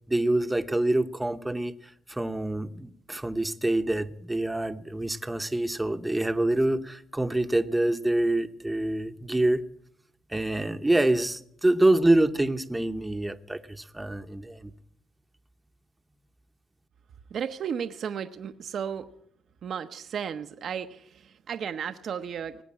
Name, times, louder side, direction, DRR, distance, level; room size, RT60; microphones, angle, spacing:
voice 1, 0.1-9.6 10.3-14.7, right 1 dB, 10° right, 8 dB, 0.8 m, -26 dB
voice 2, 17.3-19.1 19.6-22.6, right 7 dB, 60° right, 9 dB, 0.7 m, -34 dB
18.0 x 8.1 x 8.7 m, 0.70 s
cardioid pair, 90°, 0 cm